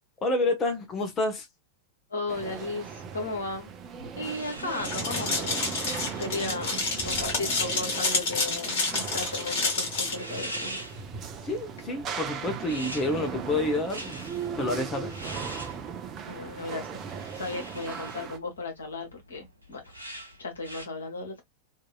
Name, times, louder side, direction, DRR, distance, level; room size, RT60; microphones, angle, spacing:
voice 1, 0.2-1.5 11.4-14.2 14.6-15.1, left 2 dB, 25° left, 0.9 m, -28 dB
voice 2, 2.1-3.7 4.2-5.8 6.2-10.8 16.3-17.0 17.3-19.9 20.4-21.4, left 3 dB, 70° left, 1.2 m, -35 dB
sound 1, 2.3-18.4, right 6 dB, 30° right, 0.6 m, -38 dB
sound 2, 4.0-20.9, equal, 85° right, 0.7 m, -44 dB
sound 3, 4.8-10.1, left 3 dB, 50° left, 1.5 m, -29 dB
2.9 x 2.7 x 2.2 m
figure-of-eight pair, 90°, 0 cm